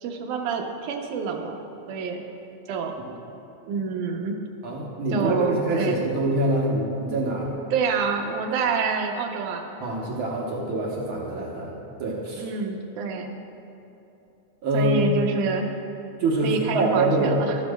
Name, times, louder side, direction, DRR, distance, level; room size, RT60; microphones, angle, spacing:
voice 1, 0.0-2.2 2.7-2.9 3.7-4.4 5.1-6.0 7.7-9.6 12.4-13.3 14.7-15.7 16.4-17.6, right 5 dB, 85° right, 3 dB, 2.2 m, -27 dB
voice 2, 4.6-7.5 9.8-11.7 12.0-12.5 14.6-15.0 16.2-17.4, right 2 dB, 65° right, -3 dB, 1.3 m, -25 dB
13.5 x 9.9 x 2.2 m, 2.8 s
omnidirectional pair, 3.4 m